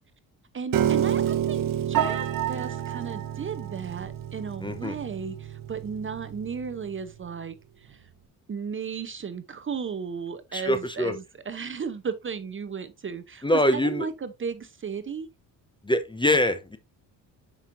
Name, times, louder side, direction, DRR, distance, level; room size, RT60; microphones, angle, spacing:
voice 1, 0.5-8.0 8.5-15.3, right 6 dB, 30° right, 0.7 m, -35 dB
Piano, 0.7-6.9, right 10 dB, 55° right, 0.9 m, -29 dB
voice 2, 4.6-5.0 10.5-11.2 13.4-14.1 15.8-16.8, left 1 dB, 10° left, 0.7 m, -24 dB
7.2 x 5.4 x 2.5 m
cardioid pair, 90°, 40 cm